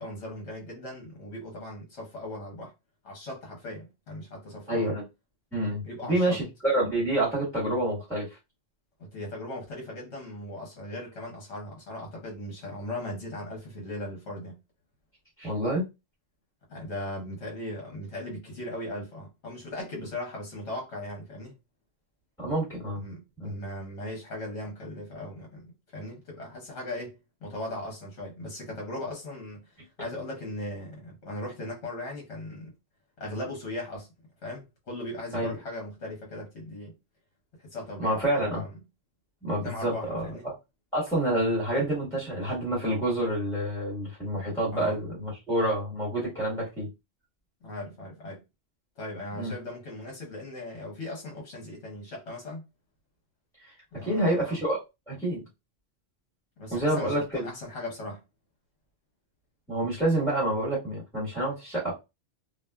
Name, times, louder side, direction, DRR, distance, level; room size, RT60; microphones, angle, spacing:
voice 1, 0.0-2.7 3.0-4.9 5.8-6.4 9.0-14.6 16.7-21.5 23.0-29.7 30.0-32.7 33.2-34.1 34.4-36.9 37.6-38.7 39.6-40.5 44.7-45.0 47.6-48.4 49.0-52.6 53.9-54.6 56.6-58.2, left 1 dB, 65° left, 1.2 m, -38 dB
voice 2, 4.7-5.0 5.5-8.3 15.4-15.8 22.4-23.0 23.4-23.5 35.3-35.5 38.0-38.6 39.4-40.5 40.9-46.9 49.4-49.5 53.6-53.7 54.0-54.8 55.1-55.4 56.7-57.5 59.7-61.9, right 1 dB, ahead, 1.3 m, -28 dB
2.5 x 2.3 x 2.2 m
omnidirectional pair, 1.3 m